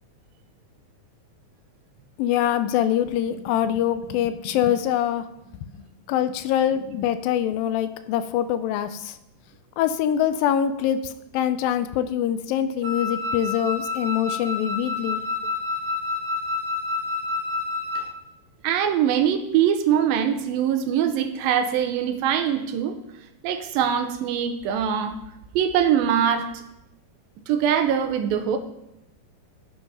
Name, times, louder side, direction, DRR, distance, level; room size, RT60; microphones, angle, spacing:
voice 1, 2.2-5.3 5.7-9.2 9.8-15.2 18.0-18.1, left 10 dB, 85° left, 12 dB, 2.3 m, -24 dB
Wind instrument woodwind instrument, 12.8-18.2, left 3 dB, 45° right, 2.6 m, -29 dB
voice 2, 18.6-23.0 23.4-25.2 25.6-26.6 27.5-28.6, right 9 dB, 80° right, 7 dB, 2.5 m, -22 dB
12.0 x 5.4 x 5.5 m, 0.86 s
omnidirectional pair, 4.2 m